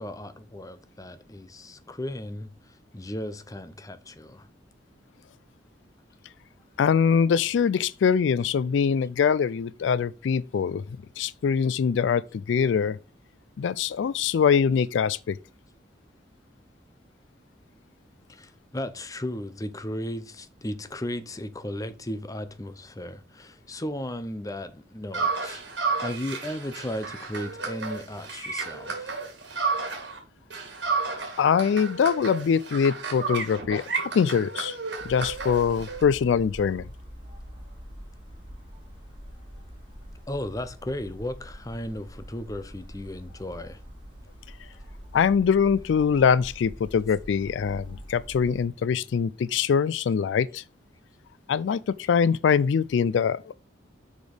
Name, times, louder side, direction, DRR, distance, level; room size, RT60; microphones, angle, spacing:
voice 1, 0.0-4.5 9.0-9.1 18.3-29.2 40.3-43.8, left 1 dB, 20° left, 0.7 m, -35 dB
voice 2, 6.8-10.8 11.2-13.0 13.6-15.4 31.4-34.8 35.0-36.9 45.1-50.6 51.5-53.5, left 6 dB, 75° left, 0.3 m, -23 dB
sound 1, 25.1-30.2 30.5-36.0, right 4 dB, 70° right, 2.5 m, -32 dB
sound 2, 35.0-48.6, equal, 25° right, 3.4 m, -44 dB
6.2 x 5.1 x 5.0 m
head